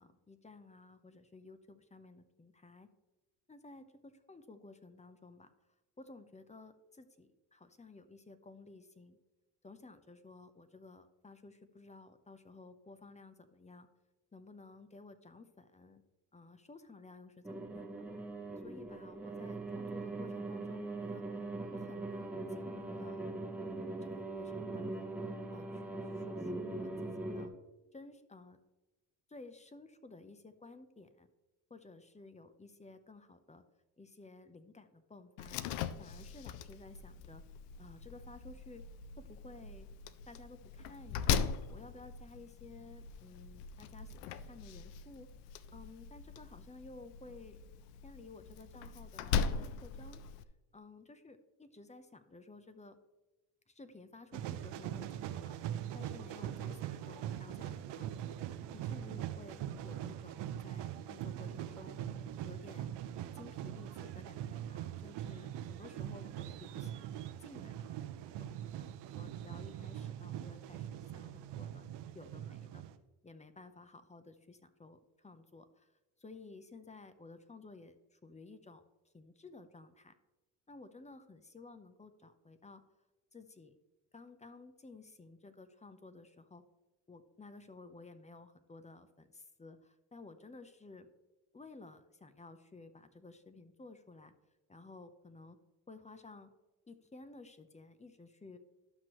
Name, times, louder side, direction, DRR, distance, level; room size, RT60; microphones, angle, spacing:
voice 1, 0.0-2.9 3.5-5.5 6.0-9.2 9.6-13.9 14.3-16.0 16.3-17.9 18.6-21.2 21.7-23.2 24.0-25.2 25.5-27.5 27.9-28.6 29.3-31.3 31.7-33.6 34.0-35.6 36.0-37.4 37.8-38.8 39.2-39.9 40.3-41.3 41.7-45.3 45.7-47.6 48.0-50.2 50.7-53.0 53.7-55.5 55.9-58.3 58.7-62.0 62.4-62.9 63.3-67.1 67.4-68.0 68.4-68.5 68.8-68.9 69.1-71.8 72.1-72.8 73.2-75.9 76.2-78.8 79.1-80.1 80.7-82.8 83.3-83.8 84.1-86.6 87.1-91.1 91.5-94.3 94.7-95.6 95.9-96.5 96.9-98.6, left 3 dB, 15° left, 10 dB, 0.8 m, -54 dB
sound 1, 17.4-27.5, right 2 dB, 5° right, 1.1 m, -41 dB
Slam, 35.4-50.4, left 7 dB, 90° left, 0.5 m, -40 dB
sound 2, 54.3-72.9, right 11 dB, 65° right, 0.8 m, -42 dB
12.0 x 5.9 x 3.1 m, 1.1 s
supercardioid pair, 65°, 46 cm